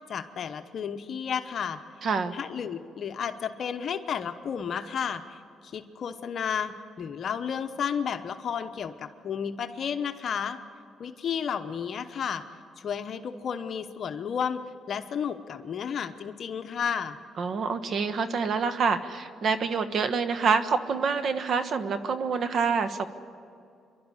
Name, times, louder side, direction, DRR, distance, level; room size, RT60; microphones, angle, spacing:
voice 1, 0.1-1.8 2.3-10.6 11.0-12.4 12.8-14.6 14.9-17.2, left 7 dB, 55° left, 8 dB, 0.9 m, -32 dB
voice 2, 2.0-2.3 17.4-23.1, right 5 dB, 60° right, 10 dB, 1.3 m, -27 dB
28.0 x 12.0 x 9.8 m, 2.5 s
cardioid pair, 90°, 0 cm